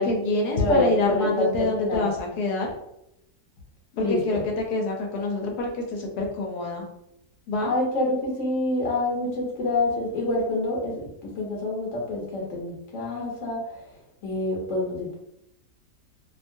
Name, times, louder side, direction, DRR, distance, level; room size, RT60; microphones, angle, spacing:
voice 1, 0.0-2.7 4.0-6.8 7.5-7.7, left 2 dB, 75° left, 1 dB, 1.2 m, -26 dB
voice 2, 0.5-2.1 3.9-4.4 7.6-10.9 11.2-13.6 14.2-15.1, left 2 dB, 55° left, -2 dB, 1.1 m, -26 dB
2.8 x 2.3 x 2.6 m, 0.81 s
omnidirectional pair, 1.7 m